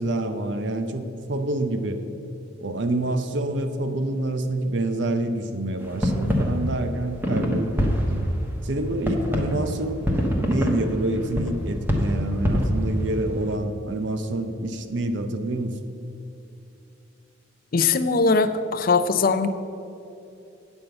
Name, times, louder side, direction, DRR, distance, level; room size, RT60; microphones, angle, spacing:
voice 1, 0.0-2.0 2.6-8.2 8.6-10.1 10.4-15.8, right 1 dB, 60° right, 8 dB, 0.6 m, -27 dB
sound 1, 5.8-13.5, equal, 10° right, 1.0 m, -25 dB
voice 2, 17.7-19.5, left 4 dB, 45° left, 10 dB, 0.5 m, -20 dB
9.2 x 5.4 x 7.8 m, 2.7 s
head